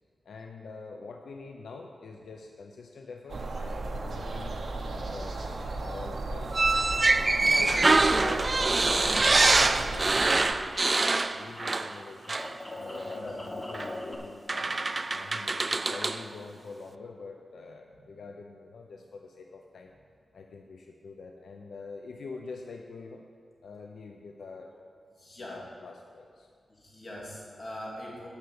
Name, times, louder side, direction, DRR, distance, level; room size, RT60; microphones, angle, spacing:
voice 1, 0.2-4.6 4.9-7.0 7.4-12.4 12.7-14.7 15.1-19.9 20.3-23.2 23.6-24.7 25.4-26.5, left 4 dB, 90° left, 2 dB, 0.6 m, -44 dB
sound 1, 3.3-10.5, right 2 dB, 60° right, 1.0 m, -35 dB
sound 2, 6.5-12.0 12.3-12.5 13.7-13.9 14.5-16.2, right 3 dB, 35° right, 0.3 m, -24 dB
sound 3, 8.7-11.6 11.8-14.1, left 1 dB, 20° left, 1.3 m, -42 dB
voice 2, 12.8-13.4 17.6-18.2 18.9-19.0 25.1-25.7 26.7-28.3, left 1 dB, 45° left, -4 dB, 2.9 m, -44 dB
9.8 x 5.7 x 8.4 m, 2.2 s
wide cardioid pair, 95°, 0 cm